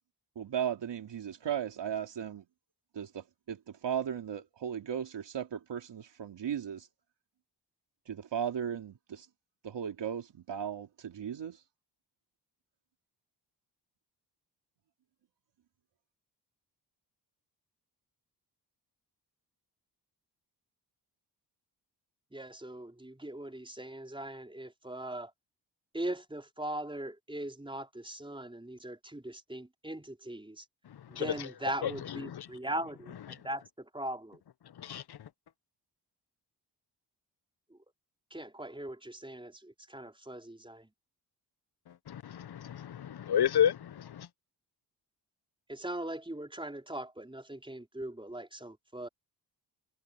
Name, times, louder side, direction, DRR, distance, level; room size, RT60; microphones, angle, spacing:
voice 1, 0.3-2.5 2.9-6.9 8.1-9.3 9.6-11.6, right 8 dB, 70° right, 2.9 m, -36 dB
voice 2, 22.3-25.3 25.9-30.6 31.1-34.4 37.7-37.8 38.3-40.9 45.7-49.1, right 1 dB, 10° right, 4.5 m, -40 dB
voice 3, 34.8-35.3 42.1-44.3, left 9 dB, 60° left, 1.0 m, -31 dB
cardioid pair, 55°, 44 cm